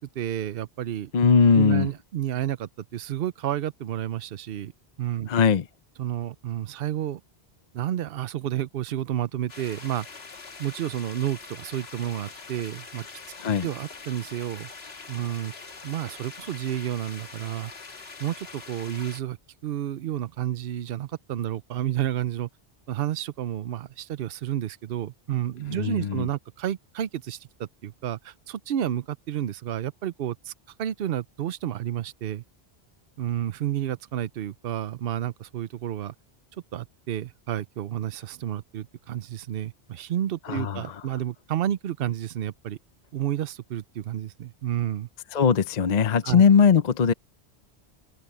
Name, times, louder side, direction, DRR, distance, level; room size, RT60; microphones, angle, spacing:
voice 1, 0.1-1.1 1.5-4.7 5.0-5.3 6.0-7.2 7.7-10.1 10.6-13.1 13.6-14.7 15.1-15.5 15.8-17.7 18.2-19.4 19.6-22.5 22.9-30.5 30.8-32.4 33.2-36.1 36.7-42.8 43.1-45.1 46.2-46.4, right 11 dB, 65° right, 0.8 m, -30 dB
voice 2, 1.1-1.9 5.3-5.7 13.4-13.7 25.7-26.3 40.5-41.0 45.3-47.1, left 6 dB, 45° left, 0.7 m, -20 dB
sound 1, 9.5-19.2, left 4 dB, 70° left, 1.9 m, -43 dB
open air
omnidirectional pair, 1.1 m